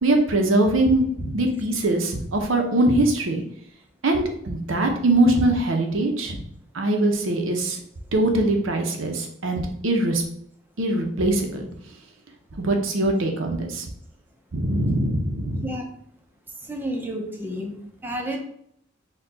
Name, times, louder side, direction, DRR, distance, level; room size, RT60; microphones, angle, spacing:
voice 1, 0.0-3.4 4.0-6.4 6.7-7.8 8.1-10.2 10.8-11.7 12.6-13.9 14.5-15.7, right 1 dB, 70° right, 3 dB, 0.7 m, -22 dB
voice 2, 16.7-17.8 18.0-18.4, equal, 10° right, 1 dB, 0.7 m, -30 dB
4.3 x 2.4 x 4.1 m, 0.68 s
head